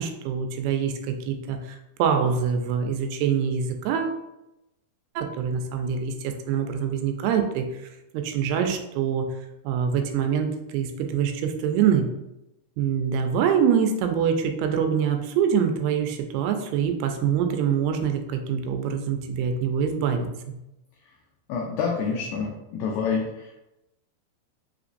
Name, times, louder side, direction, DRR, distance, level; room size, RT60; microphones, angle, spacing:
voice 1, 0.0-1.6 2.0-4.2 5.2-7.7 8.1-9.3 9.6-12.1 12.8-20.6, right 7 dB, 85° right, 5 dB, 2.5 m, -25 dB
voice 2, 21.5-23.7, left 5 dB, 90° left, 0 dB, 2.0 m, -28 dB
5.8 x 3.0 x 2.5 m, 0.90 s
omnidirectional pair, 4.6 m